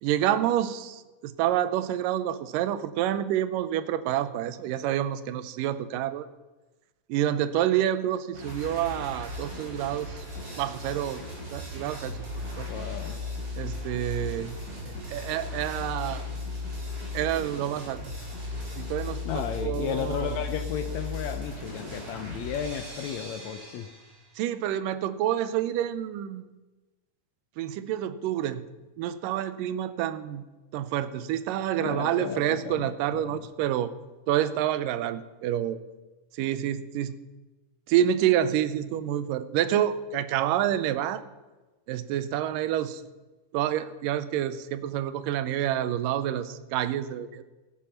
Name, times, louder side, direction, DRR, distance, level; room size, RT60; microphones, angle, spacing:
voice 1, 0.0-6.3 7.1-10.2 10.6-11.2 11.5-12.2 12.6-12.9 13.5-14.5 14.9-16.3 17.1-18.0 18.8-20.4 24.4-26.4 27.6-28.6 29.0-30.4 30.7-33.9 34.3-35.8 36.3-37.2 37.9-41.2 41.9-43.0 43.5-47.4, right 11 dB, 85° right, 13 dB, 2.3 m, -28 dB
sound 1, 8.3-24.3, left 2 dB, 45° right, 5.9 m, -37 dB
voice 2, 12.7-13.2 19.2-23.9 31.8-33.5, left 8 dB, 75° left, 8 dB, 1.7 m, -34 dB
17.0 x 8.9 x 5.7 m, 1.2 s
omnidirectional pair, 3.8 m